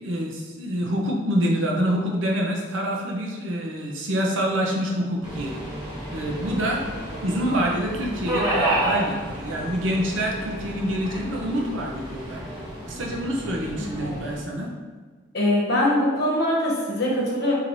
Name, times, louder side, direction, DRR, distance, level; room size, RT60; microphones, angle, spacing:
voice 1, 0.0-5.6 6.1-6.8 7.2-12.4 12.9-14.7, equal, 70° right, -1 dB, 0.6 m, -26 dB
Subway metro underground, 5.2-14.4, right 1 dB, 25° right, 1.4 m, -31 dB
voice 2, 13.8-14.2 15.3-17.5, left 1 dB, 55° left, -5 dB, 1.0 m, -23 dB
3.9 x 2.8 x 3.1 m, 1.5 s
head